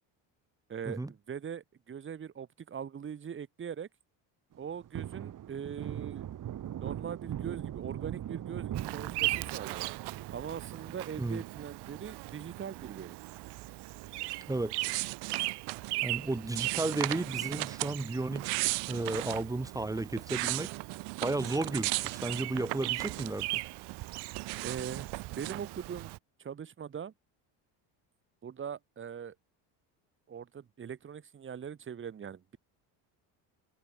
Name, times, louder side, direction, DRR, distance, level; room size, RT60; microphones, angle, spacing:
voice 1, 0.7-3.9 4.6-6.3 6.8-9.9 10.3-13.2 24.6-27.1 28.4-29.3 30.3-32.6, right 8 dB, 25° right, 1.4 m, -41 dB
Thunder, 4.5-15.3 15.6-15.7 16.1-17.6 17.9-18.0 18.4-19.2 19.6-19.7 20.0-20.1 22.5-23.0, right 11 dB, 45° right, 2.2 m, -42 dB
Bird vocalization bird call bird song, 8.7-26.2, right 20 dB, 60° right, 0.8 m, -39 dB
sound 1, 14.8-15.9 16.6-17.9 18.3-19.4 20.0-23.6 23.9-25.6, right 25 dB, 80° right, 1.1 m, -36 dB
voice 2, 16.0-18.6 18.9-20.7 21.2-23.6, right 2 dB, 10° right, 1.1 m, -33 dB
open air
cardioid pair, 125°, 45 cm